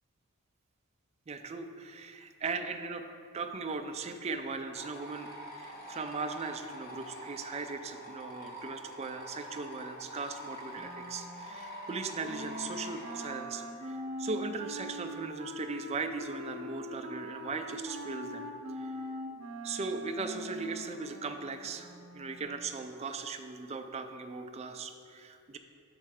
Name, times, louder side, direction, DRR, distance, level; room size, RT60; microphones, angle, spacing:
voice 1, 1.3-3.0 3.3-5.3 5.6-18.5 18.8-18.9 19.6-21.9 22.1-25.6, right 4 dB, 30° right, 6 dB, 0.3 m, -38 dB
sound 1, 4.7-13.3, equal, 40° left, 0.9 m, -46 dB
Wind instrument woodwind instrument, 10.7-22.7, equal, 65° right, 0.7 m, -43 dB
6.5 x 4.3 x 4.8 m, 2.4 s
head